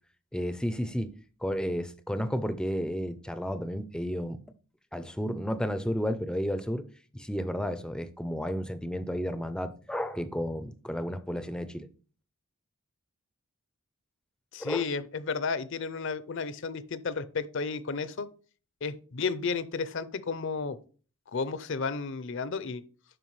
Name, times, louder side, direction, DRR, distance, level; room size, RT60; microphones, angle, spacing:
voice 1, 0.3-1.1 1.4-4.4 4.9-6.9 7.1-11.9 14.6-14.8, equal, 5° left, 0.5 m, -32 dB
voice 2, 14.5-18.3 18.8-20.8 21.3-22.8, left 5 dB, 55° left, 0.5 m, -32 dB
11.0 x 4.6 x 3.1 m
head